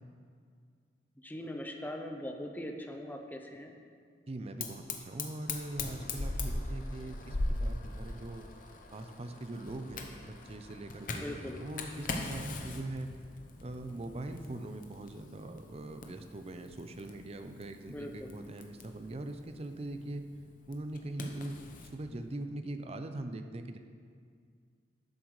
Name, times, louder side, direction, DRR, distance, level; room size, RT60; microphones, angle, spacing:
voice 1, 1.2-3.7 11.2-11.6 17.9-18.3, left 1 dB, 10° left, 3 dB, 0.6 m, -41 dB
voice 2, 4.3-8.5 8.9-13.1 13.6-20.2 20.7-21.6 21.8-23.8, right 1 dB, 35° right, 7 dB, 0.5 m, -41 dB
Fire, 4.6-21.9, left 2 dB, 45° left, 0.8 m, -41 dB
12.5 x 7.4 x 3.2 m, 2.2 s
head